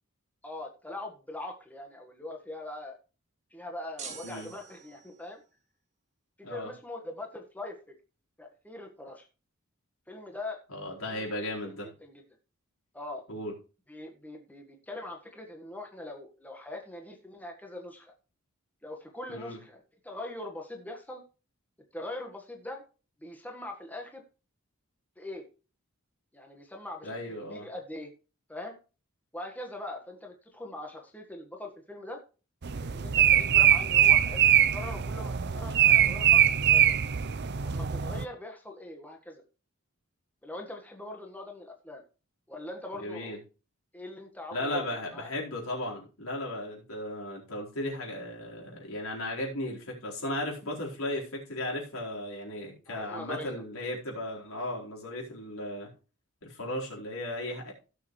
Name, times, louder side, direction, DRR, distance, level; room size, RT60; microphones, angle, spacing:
voice 1, 0.4-3.0 3.5-5.4 6.4-7.8 8.4-9.2 10.1-10.6 11.1-11.2 11.6-12.2 12.9-13.2 13.9-18.1 18.8-21.2 21.9-22.8 23.2-24.2 25.2-25.4 26.3-28.1 28.5-28.8 29.3-32.2 32.8-36.9 37.6-39.4 40.4-42.0 42.5-43.3 43.9-45.3 52.9-53.6, left 1 dB, 10° left, 1 dB, 1.6 m, -42 dB
sound 1, 4.0-5.3, right 5 dB, 35° right, 2.3 m, -45 dB
voice 2, 10.7-11.9 13.3-13.5 19.3-19.6 27.0-27.7 43.0-43.4 44.5-55.9 56.4-57.7, left 1 dB, 80° left, -2 dB, 4.5 m, -36 dB
sound 2, 32.6-38.2, right 10 dB, 55° right, 0.6 m, -23 dB
17.0 x 6.8 x 3.2 m, 0.33 s
head